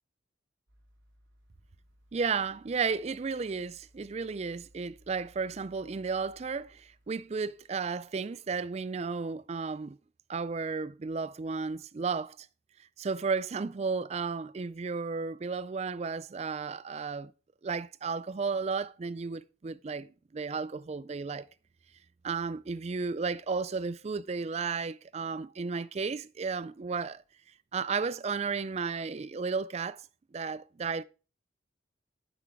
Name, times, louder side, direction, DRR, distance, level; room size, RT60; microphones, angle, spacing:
sound 1, 0.7-8.9 9.3-9.4, equal, 80° right, 2.4 m, -63 dB
voice 1, 2.1-10.0 10.3-12.5 13.0-17.3 17.6-21.5 22.2-27.2 27.7-30.1 30.3-31.0, right 5 dB, 35° right, 0.3 m, -33 dB
9.0 x 6.2 x 4.7 m
head